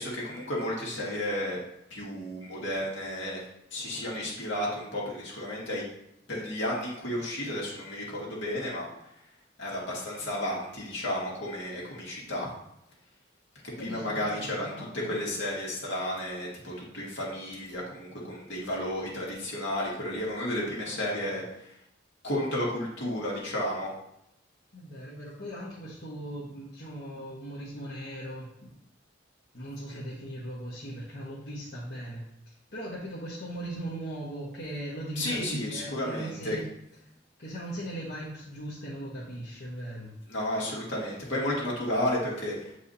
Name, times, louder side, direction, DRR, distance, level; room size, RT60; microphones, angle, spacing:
voice 1, 0.0-1.6 1.9-3.4 3.7-5.8 6.3-8.9 9.1-9.2 9.6-12.5 13.6-21.8 22.2-23.9 35.2-36.6 40.3-42.8, left 1 dB, 75° left, -4 dB, 2.1 m, -32 dB
voice 2, 13.8-14.4 14.7-15.2 21.0-21.3 24.7-28.7 29.5-36.7 37.4-40.1, right 1 dB, 55° left, -8 dB, 1.3 m, -39 dB
8.2 x 4.8 x 2.8 m, 0.79 s
head